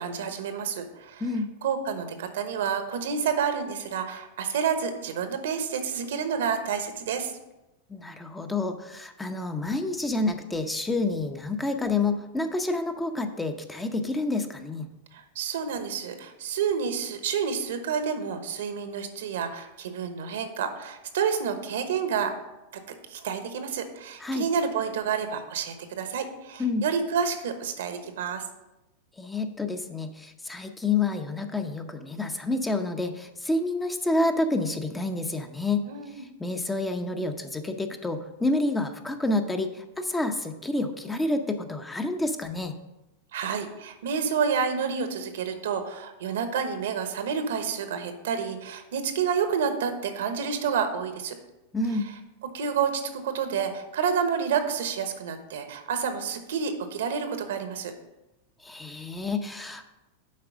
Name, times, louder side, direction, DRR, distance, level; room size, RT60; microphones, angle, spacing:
voice 1, 0.0-1.2 1.6-7.3 15.1-22.3 22.7-22.8 23.1-28.4 35.9-36.2 43.3-51.4 52.4-57.9, right 6 dB, 75° right, 8 dB, 1.1 m, -29 dB
voice 2, 7.9-14.9 24.2-24.5 26.6-26.9 29.2-35.8 36.1-42.7 51.7-52.1 58.6-59.8, left 2 dB, 10° left, 7 dB, 0.7 m, -28 dB
7.5 x 4.7 x 6.1 m, 0.98 s
hypercardioid pair, 110°, 0 cm